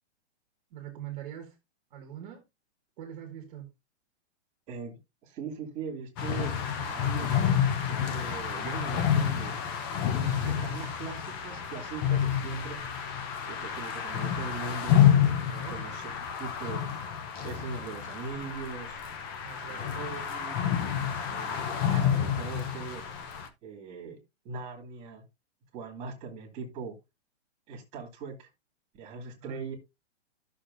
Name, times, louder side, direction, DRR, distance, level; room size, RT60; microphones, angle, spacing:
voice 1, 0.7-1.6 1.9-2.4 3.0-3.7 15.5-15.9 19.4-20.0 29.4-29.6, right 10 dB, 35° right, 1.7 m, -43 dB
voice 2, 4.7-7.4 8.1-9.6 10.4-12.8 13.5-15.0 15.7-16.8 17.4-19.0 19.6-20.6 21.2-23.0 23.6-24.2 24.4-25.2 25.7-27.0 27.7-28.5 28.9-29.8, right 5 dB, 20° right, 2.5 m, -40 dB
sound 1, 6.2-23.5, left 9 dB, 20° left, 0.7 m, -29 dB
12.0 x 6.7 x 2.6 m
hypercardioid pair, 165°, 35 cm